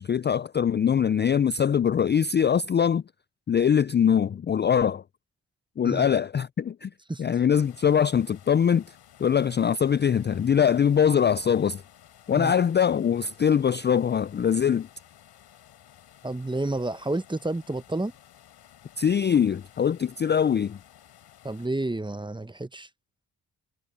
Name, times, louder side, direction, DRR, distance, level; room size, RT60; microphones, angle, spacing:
voice 1, 0.0-3.0 3.5-5.0 5.8-6.9 7.2-11.8 12.3-14.9 19.0-20.8, left 8 dB, 30° left, 0.4 m, -23 dB
sound 1, 7.5-21.7, left 11 dB, 90° left, 4.4 m, -54 dB
voice 2, 16.2-18.1 21.4-22.9, right 2 dB, 10° right, 0.9 m, -30 dB
supercardioid pair, 40°, 39 cm